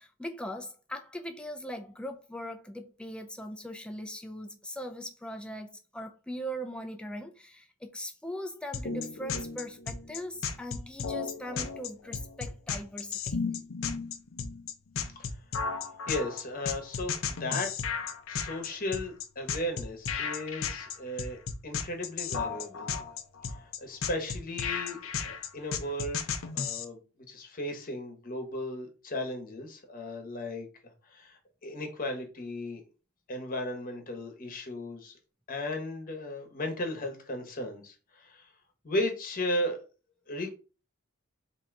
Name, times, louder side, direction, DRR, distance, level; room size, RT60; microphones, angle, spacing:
voice 1, 0.0-13.4, equal, 5° left, 0.5 m, -40 dB
sound 1, 8.7-26.9, left 6 dB, 60° left, 0.5 m, -34 dB
voice 2, 16.1-17.7 18.3-22.9 23.5-26.2 26.5-27.0 27.3-30.7 31.1-32.8 33.3-35.1 35.5-38.5 38.8-39.8 40.3-40.5, left 1 dB, 40° left, 1.1 m, -35 dB
3.8 x 2.8 x 4.5 m
head